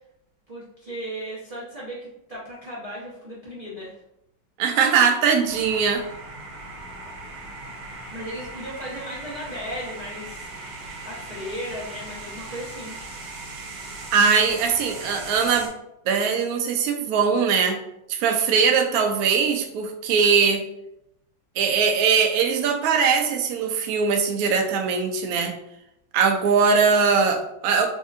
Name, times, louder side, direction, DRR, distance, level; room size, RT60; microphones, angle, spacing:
voice 1, 0.5-4.0 8.1-12.9, equal, 40° right, -8 dB, 0.5 m, -36 dB
voice 2, 4.6-6.0 14.1-15.7 16.1-17.8 18.1-20.6 21.6-25.5 26.1-27.9, right 5 dB, 90° right, 4 dB, 0.8 m, -21 dB
sound 1, 5.5-15.7, right 2 dB, 70° right, 1.3 m, -38 dB
4.2 x 2.7 x 2.5 m, 0.82 s
omnidirectional pair, 2.1 m